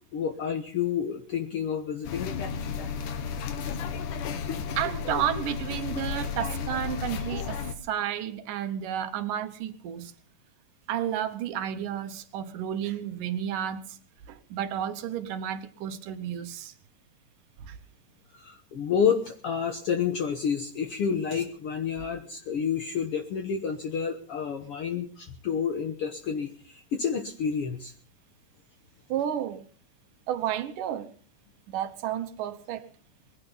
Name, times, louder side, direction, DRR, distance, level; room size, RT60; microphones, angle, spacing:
voice 1, 0.1-2.3 4.3-4.4 18.3-27.9, left 7 dB, 60° left, 5 dB, 1.8 m, -29 dB
sound 1, 2.0-7.7, left 6 dB, 80° left, 2.9 m, -33 dB
voice 2, 4.8-10.1 10.9-14.0 14.3-16.7 17.6-17.8 29.1-29.7 30.3-31.1 31.7-32.9, right 10 dB, 90° right, 9 dB, 2.8 m, -32 dB
21.0 x 16.0 x 3.9 m, 0.42 s
omnidirectional pair, 3.6 m